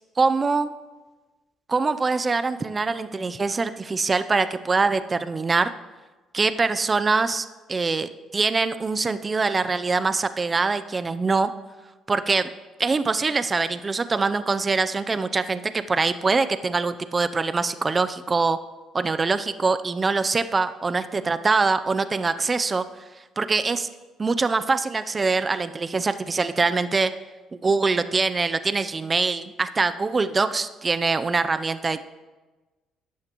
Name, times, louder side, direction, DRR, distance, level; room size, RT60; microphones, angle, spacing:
voice 1, 0.2-0.7 1.7-5.7 6.3-11.5 12.1-12.5 12.8-18.6 18.9-22.9 23.4-23.9 24.2-27.1 27.5-32.0, right 4 dB, 25° right, 12 dB, 0.5 m, -23 dB
13.5 x 9.5 x 3.0 m, 1.2 s
cardioid pair, 95°, 0 cm